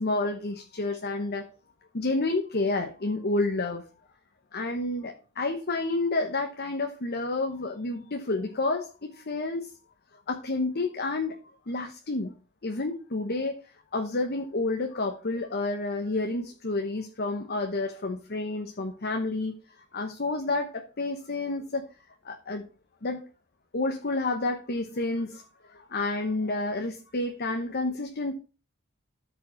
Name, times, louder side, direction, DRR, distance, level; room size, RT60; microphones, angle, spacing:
voice 1, 0.0-1.4 1.9-3.8 4.5-9.7 10.3-11.4 11.7-12.3 12.6-13.6 13.9-21.9 22.2-22.7 23.0-23.2 23.7-28.3, left 2 dB, 50° left, 5 dB, 1.0 m, -30 dB
13.0 x 5.1 x 4.4 m, 0.33 s
head